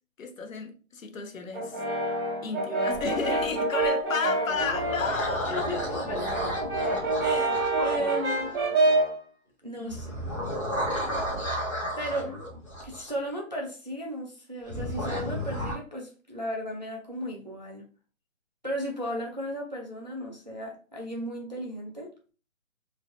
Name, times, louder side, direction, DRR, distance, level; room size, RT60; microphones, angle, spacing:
voice 1, 0.2-1.8 2.4-5.8 8.1-8.5 9.8-10.1, left 5 dB, 70° left, 0.7 m, -33 dB
Brass instrument, 1.5-5.2 5.6-9.2, right 2 dB, 20° right, 1.2 m, -27 dB
sound 1, 2.9-3.9 4.4-8.6 9.9-13.1 14.7-15.7, equal, 25° left, 0.7 m, -33 dB
voice 2, 5.4-6.6 7.2-8.6 9.6-10.1 12.0-12.4 12.8-17.8 18.6-22.1, right 1 dB, 35° right, 0.4 m, -35 dB
3.2 x 2.1 x 2.5 m
hypercardioid pair, 175°, 41 cm